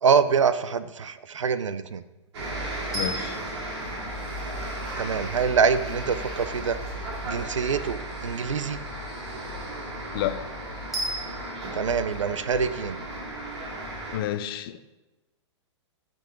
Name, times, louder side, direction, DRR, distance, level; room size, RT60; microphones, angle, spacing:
voice 1, 0.0-2.0 5.0-6.8 7.2-8.8 11.7-13.0, right 6 dB, 85° right, 0.5 m, -25 dB
sound 1, 2.3-14.2, right 1 dB, 60° right, 2.4 m, -35 dB
voice 2, 2.9-3.4 10.1-10.5 14.1-14.9, left 11 dB, 50° left, 0.5 m, -30 dB
sound 2, 2.9-5.1 10.9-11.7, right 1 dB, ahead, 2.0 m, -36 dB
9.8 x 3.9 x 3.7 m
hypercardioid pair, 120°, 15 cm